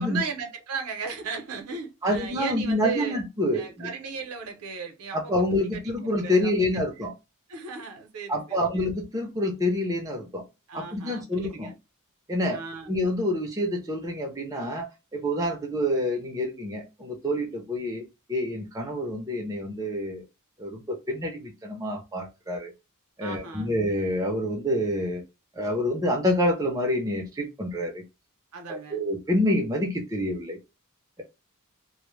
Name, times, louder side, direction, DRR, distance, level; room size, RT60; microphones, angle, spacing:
voice 1, 0.0-3.2 3.5-5.8 6.2-7.1 7.5-8.9 10.7-11.8 12.5-12.9 23.2-23.8 28.5-29.0, right 5 dB, 75° right, 0.7 m, -36 dB
voice 2, 2.0-3.9 5.1-7.1 8.3-10.4 10.7-11.7 12.3-12.6 12.9-18.0 18.3-20.2 20.6-22.7 23.2-25.2 25.6-28.0 28.7-30.6, left 1 dB, 15° right, 0.5 m, -27 dB
2.1 x 2.0 x 3.1 m
head